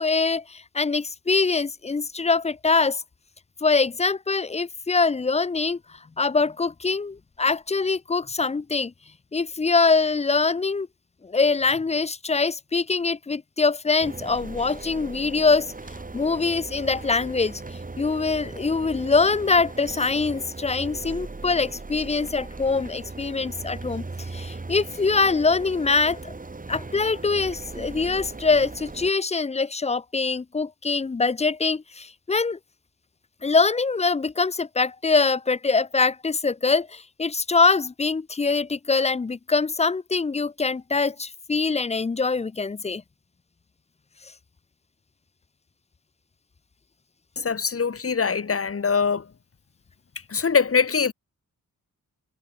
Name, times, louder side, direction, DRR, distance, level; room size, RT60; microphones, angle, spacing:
voice 1, 0.0-3.0 3.6-5.8 6.2-8.9 9.3-10.9 11.2-15.7 16.1-17.6 18.0-24.1 24.3-26.3 26.7-32.6 33.4-43.0, left 4 dB, 20° left, 0.4 m, -23 dB
sound 1, 14.0-29.1, right 3 dB, 25° right, 1.7 m, -38 dB
voice 2, 47.4-49.3 50.3-51.1, left 5 dB, 40° left, 1.5 m, -23 dB
wide cardioid pair, 90°, 35 cm